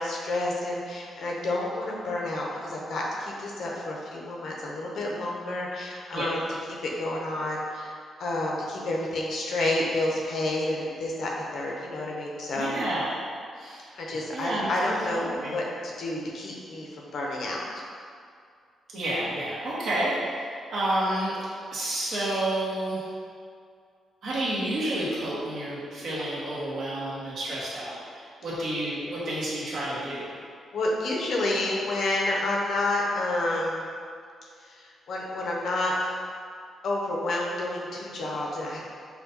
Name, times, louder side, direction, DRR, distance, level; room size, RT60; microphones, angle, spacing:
voice 1, 0.0-6.4 6.8-12.7 13.9-17.6 30.7-33.9 34.6-36.1 36.8-38.8, left 2 dB, 60° left, -2 dB, 0.6 m, -29 dB
voice 2, 12.6-13.1 13.5-13.9 14.3-15.6 18.9-21.4 21.7-23.1 24.2-30.3, right 1 dB, 60° right, -7 dB, 1.1 m, -30 dB
5.7 x 2.2 x 2.8 m, 2.3 s
cardioid pair, 135°, 0 cm